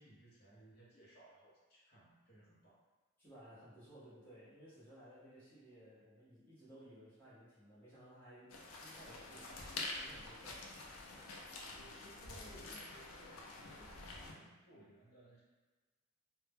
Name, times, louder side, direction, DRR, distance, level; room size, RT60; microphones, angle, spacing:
voice 1, 0.0-2.8 11.7-15.4, right 1 dB, 45° left, -5 dB, 0.6 m, -61 dB
voice 2, 3.2-9.5 9.9-10.7, equal, 10° left, -14 dB, 0.7 m, -58 dB
sound 1, 8.5-14.3, left 2 dB, 90° left, 0.4 m, -47 dB
2.1 x 2.0 x 3.3 m, 1.3 s
head